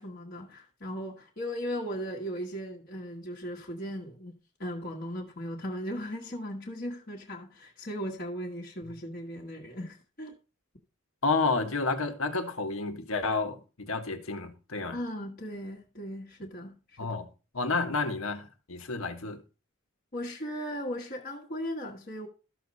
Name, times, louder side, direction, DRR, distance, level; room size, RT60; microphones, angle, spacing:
voice 1, 0.0-10.3 14.9-17.2 20.1-22.3, equal, 40° left, 1.5 m, -37 dB
voice 2, 11.2-15.0 17.0-17.3 17.5-19.4, left 3 dB, 75° left, 1.5 m, -30 dB
13.5 x 6.6 x 4.2 m
head